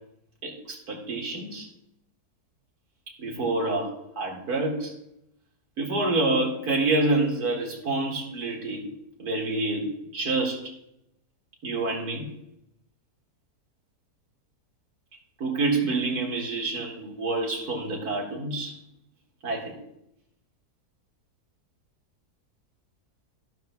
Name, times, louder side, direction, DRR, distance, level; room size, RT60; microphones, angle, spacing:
voice 1, 0.4-1.7 3.2-4.9 5.8-8.9 9.2-10.7 11.6-12.3 15.4-18.8 19.4-19.7, right 2 dB, 70° right, -1 dB, 2.7 m, -27 dB
13.0 x 12.0 x 2.3 m, 0.78 s
omnidirectional pair, 1.7 m